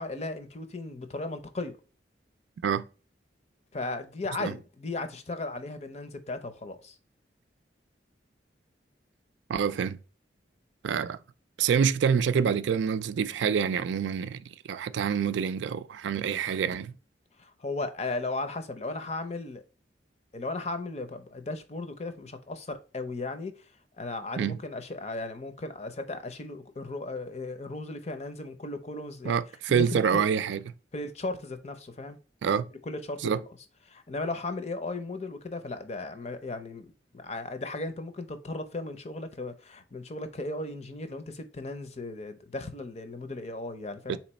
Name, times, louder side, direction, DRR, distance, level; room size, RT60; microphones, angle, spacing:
voice 1, 0.0-1.8 3.7-7.0 17.4-19.6 20.3-23.5 24.0-29.4 29.7-30.4 30.9-32.2 32.8-33.2 33.9-44.2, left 2 dB, 35° left, 0.6 m, -36 dB
voice 2, 9.5-10.0 10.8-11.2 11.6-14.4 14.7-16.9 24.4-24.6 29.2-30.6 32.4-32.7 33.2-33.4 44.1-44.2, right 7 dB, 75° right, 0.3 m, -26 dB
4.0 x 3.0 x 4.2 m
head